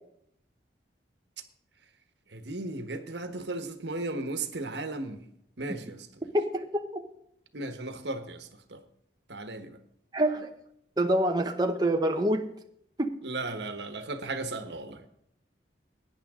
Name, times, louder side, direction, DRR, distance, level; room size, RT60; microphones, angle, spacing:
voice 1, 2.3-5.2 5.6-6.3 7.5-8.8 9.3-9.8 13.2-15.0, right 2 dB, 75° right, 1.3 m, -36 dB
voice 2, 6.3-7.0 10.1-10.5 11.0-12.4 13.0-13.1, right 1 dB, 20° right, 0.8 m, -26 dB
17.5 x 9.8 x 3.7 m
head